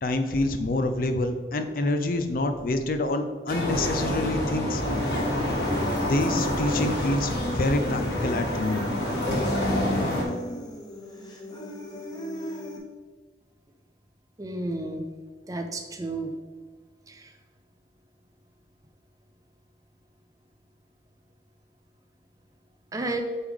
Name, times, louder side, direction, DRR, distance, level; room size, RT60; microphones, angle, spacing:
voice 1, 0.0-4.8 6.0-9.0, left 2 dB, 50° left, 8 dB, 0.5 m, -27 dB
sound 1, 3.5-10.2, left 1 dB, 70° left, 1.7 m, -27 dB
Human voice, 4.8-12.8, left 1 dB, 25° left, 0.9 m, -35 dB
voice 2, 14.4-15.0 15.5-16.3 17.1-17.2 22.9-23.2, right 2 dB, 20° right, 5 dB, 0.5 m, -31 dB
8.2 x 3.6 x 3.5 m, 1.5 s
head